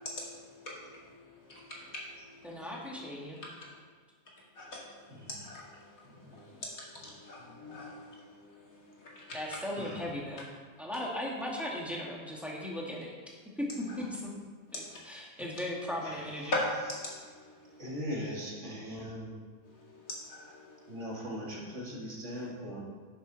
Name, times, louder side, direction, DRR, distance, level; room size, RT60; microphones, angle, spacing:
voice 1, 0.0-2.6 4.6-4.8 5.4-5.8 6.6-9.4 16.5-16.6 17.0-17.5 19.8-20.8, left 2 dB, 70° left, -4 dB, 2.8 m, -42 dB
voice 2, 2.4-3.4 9.3-10.5 10.8-14.4 14.7-16.6, left 1 dB, ahead, -4 dB, 1.9 m, -37 dB
voice 3, 5.1-5.4 6.0-6.6 6.9-7.1 7.4-8.0 9.7-10.1 16.0-16.5 17.8-19.4 20.9-22.8, equal, 55° right, -4 dB, 2.4 m, -41 dB
11.0 x 8.8 x 4.1 m, 1.5 s
omnidirectional pair, 1.5 m